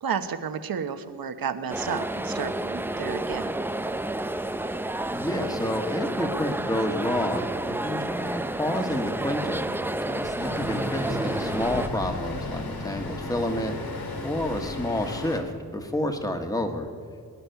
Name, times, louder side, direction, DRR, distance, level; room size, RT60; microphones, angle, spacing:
voice 1, 0.0-3.5, right 7 dB, 65° right, 9 dB, 1.1 m, -32 dB
sound 1, 1.7-11.9, right 1 dB, 5° right, 0.4 m, -30 dB
voice 2, 5.1-9.7 10.1-13.7 14.2-16.9, left 1 dB, 10° left, 5 dB, 1.4 m, -29 dB
Traffic noise roadway noise, 10.4-15.4, left 2 dB, 65° left, 2.0 m, -34 dB
21.5 x 11.0 x 5.7 m, 2.2 s
wide cardioid pair, 90°, 38 cm